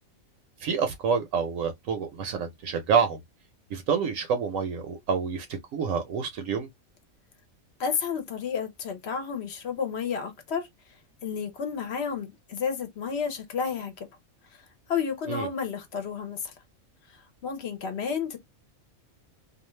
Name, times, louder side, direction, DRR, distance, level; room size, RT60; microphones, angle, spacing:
voice 1, 0.6-3.2 3.7-5.5 5.7-6.7 15.3-15.5, right 6 dB, 75° right, 0.9 m, -27 dB
voice 2, 7.8-10.7 11.2-14.1 14.9-16.5 17.4-18.4, left 6 dB, 60° left, 0.9 m, -31 dB
2.4 x 2.3 x 3.0 m
omnidirectional pair, 1.4 m